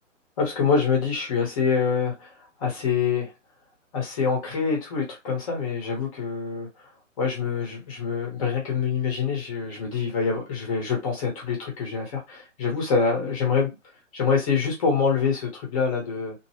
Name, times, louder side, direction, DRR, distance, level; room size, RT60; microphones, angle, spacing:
voice 1, 0.4-2.3 2.6-3.3 3.9-6.9 7.2-13.7 14.1-16.3, left 5 dB, 25° left, 1.0 m, -25 dB
2.7 x 2.1 x 2.8 m
figure-of-eight pair, 140°, 39 cm